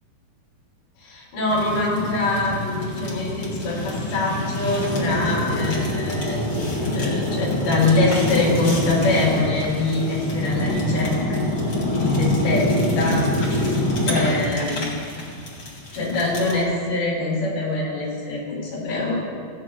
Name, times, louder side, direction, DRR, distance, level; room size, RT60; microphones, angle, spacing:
voice 1, 1.0-11.4 12.0-13.2 13.6-13.8 14.1-15.1 15.9-19.2, left 2 dB, 75° left, -4 dB, 5.6 m, -24 dB
Fire, 1.5-16.6, left 1 dB, 30° left, 2.5 m, -25 dB
17.5 x 15.5 x 2.4 m, 2.1 s
omnidirectional pair, 4.9 m